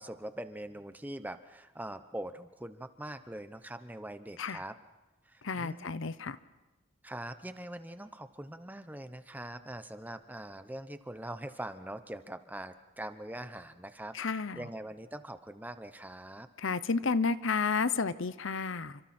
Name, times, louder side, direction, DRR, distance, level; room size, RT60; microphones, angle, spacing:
voice 1, 0.0-4.8 5.3-5.9 7.0-16.5, right 1 dB, 10° right, 10 dB, 0.9 m, -43 dB
voice 2, 5.4-6.4 14.1-14.6 16.6-19.0, left 4 dB, 75° left, 15 dB, 0.8 m, -31 dB
29.5 x 25.5 x 4.4 m, 1.0 s
head